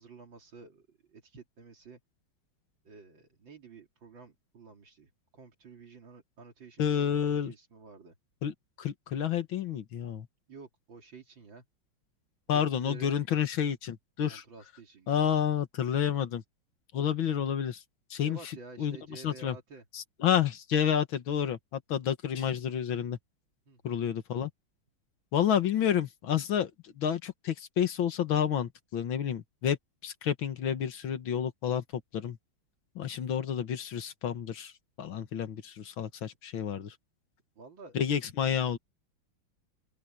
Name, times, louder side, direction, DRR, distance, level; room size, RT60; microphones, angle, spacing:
voice 1, 0.0-2.0 2.8-8.2 10.5-11.6 12.5-13.2 14.3-15.4 18.2-19.8 23.7-24.0 37.6-38.0, right 4 dB, 70° right, 3.4 m, -51 dB
voice 2, 6.8-7.5 8.4-10.3 12.5-14.4 15.1-16.4 16.9-17.8 18.1-18.4 18.8-19.6 19.9-23.2 23.8-24.5 25.3-29.8 30.0-32.4 33.0-34.7 35.0-37.0 37.9-38.8, left 9 dB, 80° left, 2.2 m, -30 dB
open air
omnidirectional pair, 2.2 m